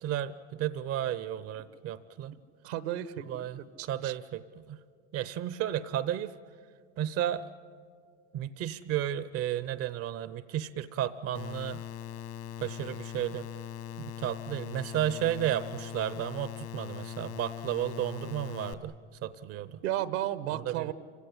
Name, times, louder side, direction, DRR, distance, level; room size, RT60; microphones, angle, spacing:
voice 1, 0.0-2.4 3.3-3.6 3.9-4.8 5.1-6.3 7.0-7.5 8.3-11.8 12.6-13.5 14.0-19.0 19.2-19.8 20.5-20.9, right 11 dB, 45° right, 15 dB, 0.8 m, -33 dB
voice 2, 2.6-4.1 19.8-20.9, right 13 dB, 75° right, 15 dB, 1.2 m, -34 dB
sound 1, 11.3-18.7, left 10 dB, 60° left, 1.7 m, -41 dB
27.0 x 17.0 x 10.0 m, 2.2 s
hypercardioid pair, 95°, 34 cm